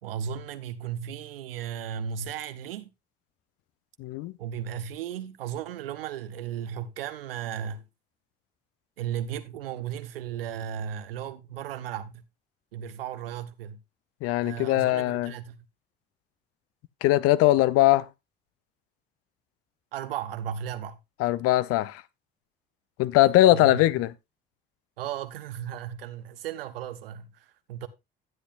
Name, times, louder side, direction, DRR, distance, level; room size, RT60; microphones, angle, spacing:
voice 1, 0.0-2.9 4.4-7.8 9.0-12.2 12.7-13.8 14.4-15.6 19.9-21.0 23.5-23.8 25.0-27.9, right 9 dB, 75° right, 0.8 m, -35 dB
voice 2, 4.0-4.3 14.2-15.3 17.0-18.1 21.2-22.0 23.0-24.1, left 15 dB, 50° left, 0.6 m, -21 dB
12.5 x 9.8 x 2.5 m
figure-of-eight pair, 50°, 29 cm